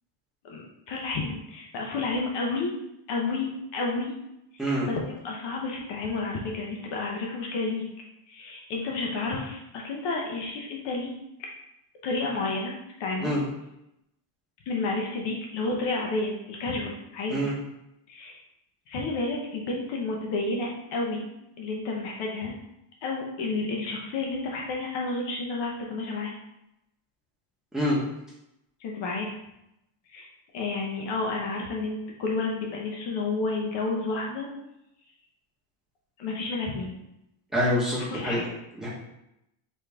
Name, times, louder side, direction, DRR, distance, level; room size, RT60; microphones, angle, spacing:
voice 1, 0.4-2.8 3.1-4.1 4.5-7.9 8.3-11.1 11.4-11.5 12.0-12.7 13.0-13.3 14.7-17.4 18.1-18.4 18.9-21.3 21.6-22.5 23.0-26.3 28.8-29.4 30.1-30.3 30.5-34.5 36.2-37.0 38.1-38.5, left 3 dB, 60° left, -1 dB, 1.0 m, -31 dB
voice 2, 37.5-38.4 38.8-38.9, equal, ahead, -7 dB, 1.5 m, -25 dB
4.3 x 3.3 x 3.5 m, 0.85 s
cardioid pair, 135°, 49 cm